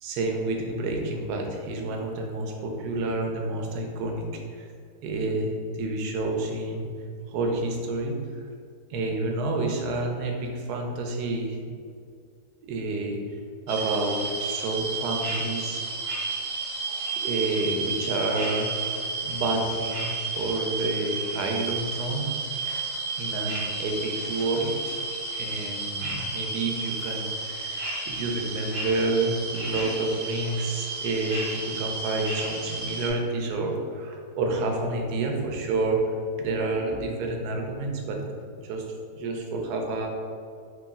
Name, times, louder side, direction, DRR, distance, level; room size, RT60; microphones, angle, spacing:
voice 1, 0.0-4.2 4.5-4.7 5.0-6.9 7.3-8.4 8.9-11.6 12.6-13.2 13.7-15.8 16.8-18.7 19.2-22.3 23.2-25.0 25.4-38.2 38.5-38.8 39.2-40.1, right 2 dB, 75° right, 2 dB, 1.1 m, -29 dB
sound 1, 13.7-33.1, right 3 dB, 45° right, 0.8 m, -32 dB
3.1 x 3.0 x 3.5 m, 2.2 s
omnidirectional pair, 1.8 m